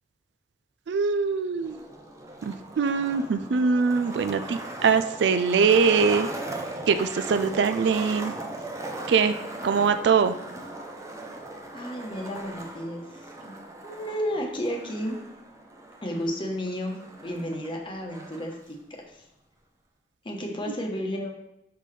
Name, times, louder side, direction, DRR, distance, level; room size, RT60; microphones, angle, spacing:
voice 1, 0.9-1.8 2.4-6.3 6.9-8.3 9.1-9.4 9.6-10.3 20.7-20.8, right 5 dB, 75° right, 10 dB, 0.4 m, -23 dB
Skateboard, 1.6-18.6, right 2 dB, 20° right, 0.6 m, -39 dB
voice 2, 11.7-13.0 13.4-13.5 13.8-15.2 16.0-17.0 17.2-18.8 19.1-19.2 20.2-21.3, equal, 30° left, 1 dB, 1.0 m, -32 dB
5.7 x 5.3 x 3.3 m, 0.86 s
head